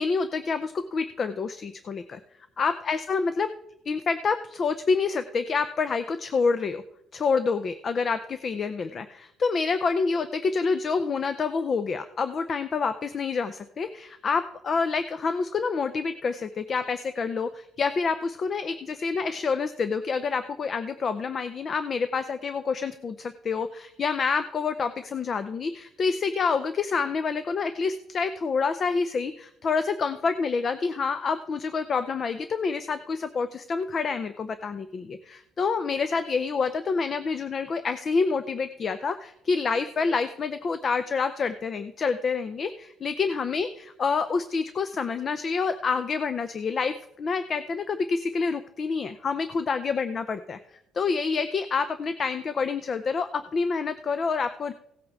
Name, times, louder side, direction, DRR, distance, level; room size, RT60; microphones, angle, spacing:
voice 1, 0.0-2.2 2.6-3.5 3.9-6.8 7.1-50.6 50.9-54.7, left 5 dB, 35° left, 11 dB, 0.5 m, -27 dB
17.0 x 8.4 x 3.6 m, 0.78 s
cardioid pair, 135°, 0 cm